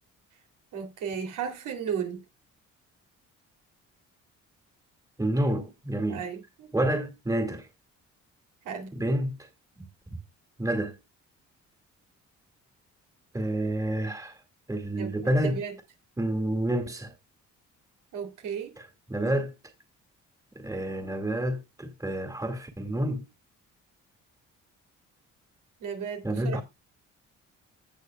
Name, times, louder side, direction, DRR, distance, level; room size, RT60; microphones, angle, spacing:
voice 1, 0.7-2.2 6.1-6.7 8.6-8.9 14.9-15.7 18.1-18.8 25.8-26.6, right 7 dB, 85° right, 3.1 m, -35 dB
voice 2, 5.2-6.2 6.7-7.7 8.9-9.5 10.6-11.0 13.3-14.4 14.7-15.6 16.2-17.1 18.8-18.9 19.1-19.5 20.6-23.2 26.2-26.6, right 1 dB, 10° right, 2.1 m, -28 dB
16.5 x 6.7 x 2.3 m
cardioid pair, 90°, 30 cm